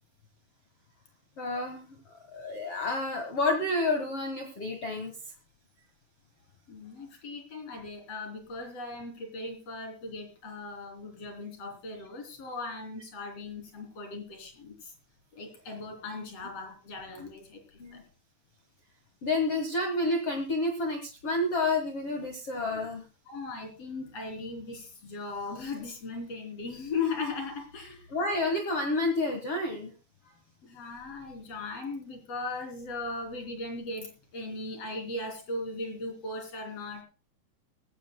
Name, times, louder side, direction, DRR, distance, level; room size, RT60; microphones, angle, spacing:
voice 1, 1.4-1.8 2.3-5.1 17.8-18.0 19.2-23.0 28.1-29.9, left 2 dB, 75° left, 5 dB, 1.3 m, -29 dB
voice 2, 6.7-14.9 15.3-18.0 22.7-22.8 23.3-28.1 30.6-37.0, left 3 dB, 35° left, 3 dB, 3.9 m, -38 dB
19.5 x 16.0 x 2.2 m, 0.32 s
omnidirectional pair, 5.1 m